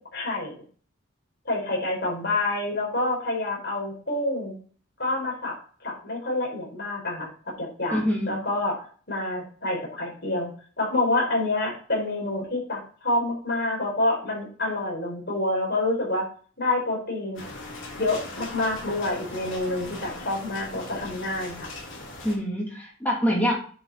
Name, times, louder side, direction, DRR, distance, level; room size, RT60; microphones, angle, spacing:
voice 1, 0.1-0.5 1.4-4.6 5.0-8.8 9.1-10.5 10.8-16.3 16.6-17.4 18.0-21.7, left 2 dB, 55° left, -2 dB, 4.7 m, -27 dB
voice 2, 7.9-8.3 22.2-23.5, equal, 10° left, -3 dB, 3.0 m, -25 dB
sound 1, 17.3-22.3, left 2 dB, 70° left, 4.2 m, -39 dB
9.8 x 6.0 x 4.2 m, 0.42 s
head